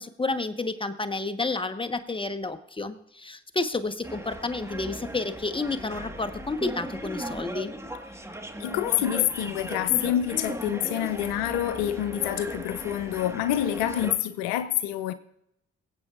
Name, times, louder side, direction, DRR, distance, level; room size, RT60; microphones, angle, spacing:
voice 1, 0.0-7.7, left 3 dB, 15° left, 1.2 m, -30 dB
sound 1, 4.0-14.1, right 1 dB, 10° right, 1.6 m, -37 dB
voice 2, 8.6-15.1, left 12 dB, 80° left, 0.5 m, -27 dB
24.0 x 8.0 x 2.5 m
hypercardioid pair, 40°, 32 cm